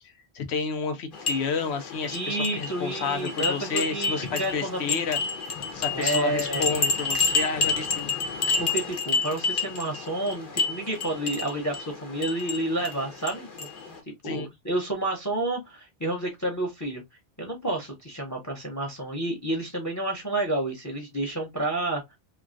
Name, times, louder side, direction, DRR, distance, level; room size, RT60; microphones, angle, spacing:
voice 1, 0.3-5.2 5.7-8.1 14.2-14.5, left 5 dB, 90° left, 1.0 m, -30 dB
Wind Chimes on a Windy Day, 1.1-14.0, left 4 dB, 55° left, 1.0 m, -30 dB
voice 2, 2.0-5.0 5.9-6.7 8.6-17.0 17.4-22.0, right 1 dB, 20° left, 0.6 m, -30 dB
3.1 x 2.4 x 2.4 m
omnidirectional pair, 1.1 m